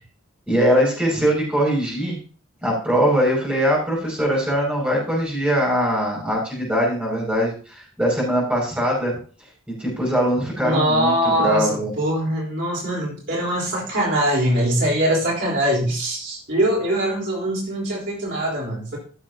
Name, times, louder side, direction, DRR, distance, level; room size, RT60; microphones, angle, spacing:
voice 1, 0.5-2.2 2.6-9.1 9.8-11.9, equal, 5° right, -4 dB, 5.8 m, -21 dB
voice 2, 10.6-19.0, equal, 55° right, -4 dB, 3.8 m, -22 dB
15.5 x 7.3 x 2.8 m, 0.41 s
head